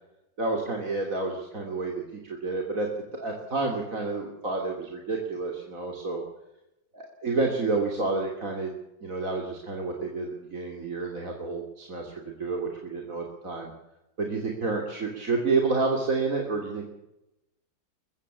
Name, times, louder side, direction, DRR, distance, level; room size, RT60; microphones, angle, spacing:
voice 1, 0.4-6.2 6.9-8.7 9.0-13.7 14.2-16.9, right 3 dB, 40° right, 1 dB, 3.3 m, -29 dB
23.0 x 15.0 x 8.4 m, 0.93 s
omnidirectional pair, 2.1 m